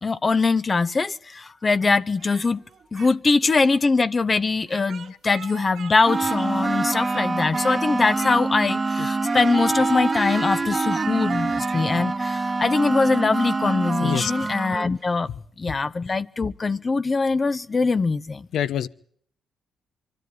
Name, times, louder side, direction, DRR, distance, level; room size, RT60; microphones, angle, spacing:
voice 1, 0.0-2.6 2.9-15.3 15.6-18.5, left 4 dB, 30° left, 0.9 m, -22 dB
Speech, 2.2-3.2 3.4-3.8 4.6-5.9 6.2-7.2 7.5-7.8 8.1-8.7 9.1-11.9, right 8 dB, 65° right, 2.2 m, -41 dB
sound 1, 6.1-14.9, right 3 dB, 25° right, 1.5 m, -25 dB
voice 2, 18.5-18.9, left 10 dB, 70° left, 1.1 m, -26 dB
24.5 x 13.0 x 9.5 m
cardioid pair, 90°, 0 cm